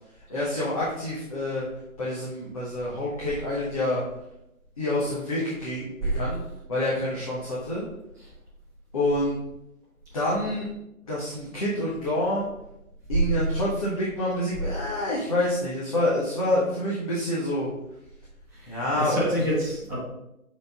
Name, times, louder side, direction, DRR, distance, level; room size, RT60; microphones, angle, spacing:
voice 1, 0.3-1.7 2.0-4.0 4.8-6.4 6.7-7.8 8.9-9.4 10.1-10.7 11.0-12.5 13.1-17.7 18.7-19.2, left 1 dB, 25° left, -7 dB, 1.1 m, -27 dB
voice 2, 18.5-20.0, equal, 5° right, -11 dB, 1.7 m, -28 dB
6.8 x 4.1 x 4.0 m, 0.86 s
figure-of-eight pair, 145°, 44 cm